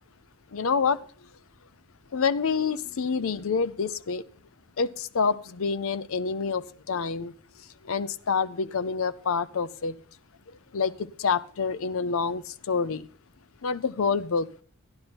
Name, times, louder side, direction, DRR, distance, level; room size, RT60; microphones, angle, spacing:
voice 1, 0.5-1.0 2.1-4.2 4.8-7.3 7.8-9.9 10.7-13.1 13.6-14.5, left 5 dB, 65° left, 17 dB, 0.5 m, -27 dB
13.0 x 10.5 x 4.2 m, 0.39 s
head